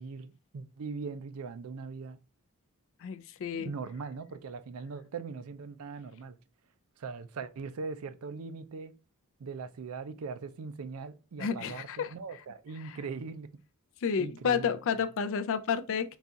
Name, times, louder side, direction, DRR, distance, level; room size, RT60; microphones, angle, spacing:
voice 1, 0.0-2.2 3.5-6.4 7.0-9.0 9.4-13.5 14.2-14.7, right 4 dB, 70° right, 0.4 m, -40 dB
voice 2, 3.0-3.7 11.4-12.1 12.8-13.0 14.0-16.2, left 6 dB, 60° left, 0.4 m, -31 dB
4.0 x 2.4 x 3.6 m
head